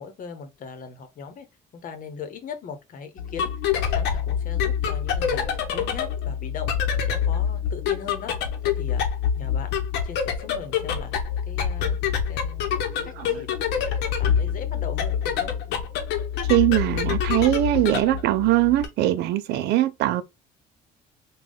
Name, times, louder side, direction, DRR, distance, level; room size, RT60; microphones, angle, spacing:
voice 1, 0.0-1.5 1.7-6.7 7.1-8.3 8.6-9.7 10.0-11.1 11.5-12.0 12.3-12.7 13.0-15.5, left 6 dB, 55° left, 0.9 m, -39 dB
sound 1, 3.2-18.9, left 8 dB, 90° left, 0.9 m, -26 dB
voice 2, 12.7-13.4 16.5-20.2, right 15 dB, 75° right, 0.5 m, -22 dB
3.6 x 2.3 x 3.7 m
cardioid pair, 110°, 17 cm